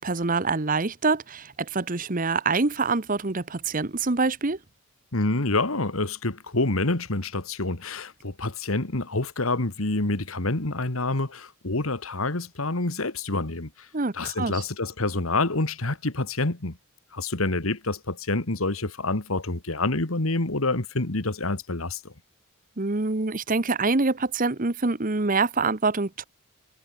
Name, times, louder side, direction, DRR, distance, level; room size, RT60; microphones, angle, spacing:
voice 1, 0.0-4.6 13.9-14.5 22.8-26.2, right 3 dB, 40° right, 1.1 m, -25 dB
voice 2, 5.1-13.9 14.1-16.8 17.1-22.1, left 2 dB, 85° left, 2.2 m, -27 dB
head